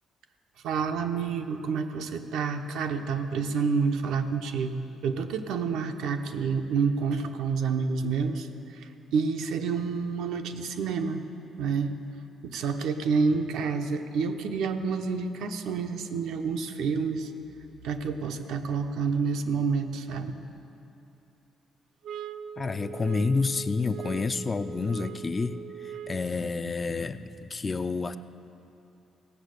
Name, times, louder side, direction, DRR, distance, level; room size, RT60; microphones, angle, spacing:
voice 1, 0.6-11.2 11.6-11.9 12.4-17.3 17.8-20.3 23.3-23.4, right 5 dB, 85° right, 6 dB, 0.7 m, -29 dB
sound 1, 22.0-26.4, right 8 dB, 60° right, 0.3 m, -40 dB
voice 2, 22.6-28.2, left 4 dB, 25° left, 11 dB, 0.3 m, -29 dB
16.5 x 7.4 x 6.6 m, 2.9 s
cardioid pair, 155°, 0 cm